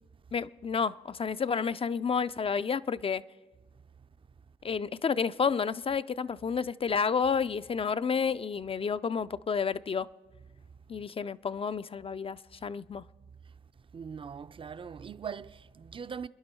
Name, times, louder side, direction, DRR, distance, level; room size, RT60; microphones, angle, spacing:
voice 1, 0.3-3.2 4.6-10.1 10.9-13.0, left 6 dB, 30° left, 0.4 m, -30 dB
voice 2, 13.9-16.3, right 6 dB, 30° right, 0.5 m, -41 dB
28.5 x 10.5 x 4.5 m
cardioid pair, 70°, 18 cm